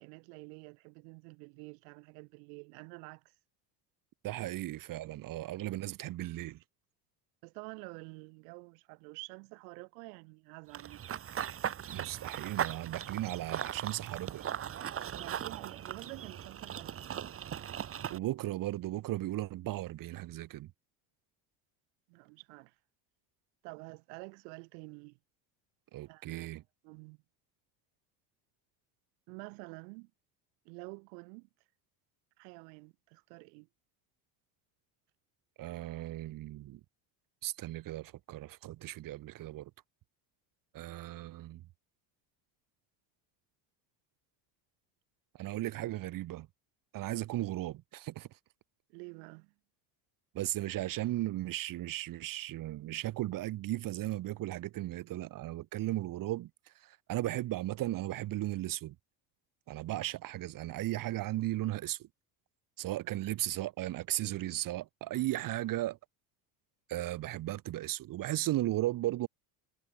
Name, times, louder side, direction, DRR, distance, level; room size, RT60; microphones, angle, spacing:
voice 1, 0.0-3.3 5.0-5.1 7.4-11.1 15.2-17.0 22.1-22.7 23.6-25.2 26.1-26.5 26.8-27.2 29.3-30.1 30.6-31.5 32.4-33.7 48.9-49.5, right 38 dB, 90° right, 4.8 m, -49 dB
voice 2, 4.2-6.6 11.9-14.5 18.1-20.7 25.9-26.6 35.6-36.8 37.4-39.7 40.7-41.6 45.4-46.5 46.9-48.3 50.3-56.5 56.7-58.9 59.7-62.1 62.8-66.0 66.9-69.3, right 15 dB, 45° right, 1.3 m, -36 dB
Run / Bird vocalization bird call bird song, 10.7-18.2, right 9 dB, 30° right, 1.4 m, -38 dB
cardioid pair, 150°, 47 cm